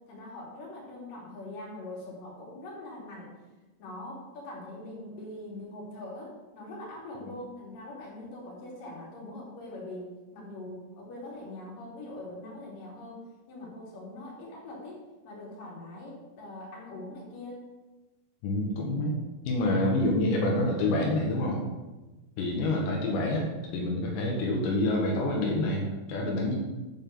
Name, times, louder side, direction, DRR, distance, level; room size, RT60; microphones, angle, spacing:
voice 1, 0.1-3.3 3.8-13.2 13.5-17.6 22.9-23.3, left 1 dB, 55° left, -4 dB, 4.4 m, -42 dB
voice 2, 18.4-19.2 19.5-21.6 22.4-26.6, left 1 dB, 90° left, -1 dB, 3.6 m, -27 dB
9.1 x 5.4 x 7.6 m, 1.1 s
omnidirectional pair, 4.9 m